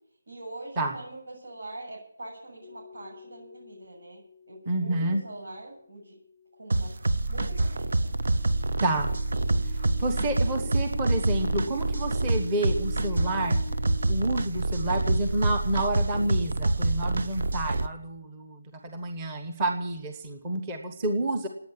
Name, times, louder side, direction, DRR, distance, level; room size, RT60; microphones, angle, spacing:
voice 1, 0.3-4.2 4.5-6.2 6.5-6.9 7.2-8.1, right 2 dB, 75° right, -3 dB, 7.9 m, -43 dB
sound 1, 2.6-5.2 7.5-14.2, left 3 dB, 25° left, 0.6 m, -46 dB
voice 2, 4.7-5.2 8.8-9.1 10.0-13.6 14.1-21.5, right 1 dB, 10° right, 5 dB, 1.1 m, -29 dB
sound 2, 6.7-17.9, right 2 dB, 50° right, 0.9 m, -27 dB
18.0 x 9.0 x 8.6 m, 0.66 s
hypercardioid pair, 180°, 0 cm